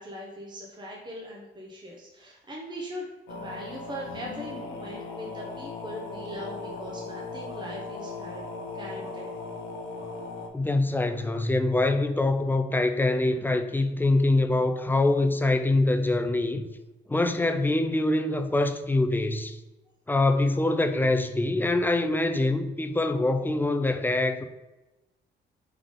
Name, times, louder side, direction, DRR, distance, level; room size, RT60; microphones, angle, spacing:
voice 1, 0.0-8.5 8.7-9.3, equal, 20° right, 0.9 m, -40 dB
sound 1, 3.3-10.5, left 3 dB, 90° left, 0.6 m, -38 dB
voice 2, 10.5-16.7 17.1-19.6 20.1-24.4, left 2 dB, 10° left, 0.3 m, -24 dB
3.6 x 3.4 x 3.7 m
cardioid pair, 90°, 20 cm